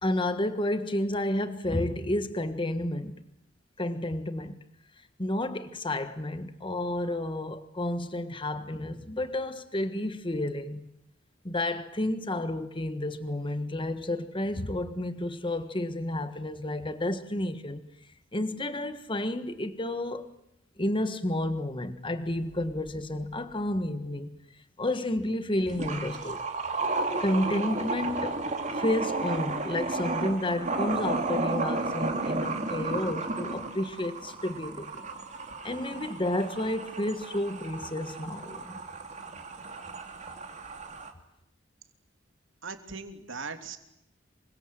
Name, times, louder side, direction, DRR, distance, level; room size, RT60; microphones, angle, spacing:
voice 1, 0.0-3.2 3.8-4.6 5.2-10.8 11.4-17.8 18.3-20.3 20.8-24.4 24.8-26.4 27.2-28.4 28.7-35.0 35.6-38.8, left 1 dB, 25° left, 1.5 m, -31 dB
sound 1, 22.7-22.8 25.7-41.1, right 3 dB, 35° right, 2.9 m, -33 dB
voice 2, 42.6-43.8, right 4 dB, 75° right, 3.0 m, -39 dB
27.5 x 24.5 x 7.6 m
head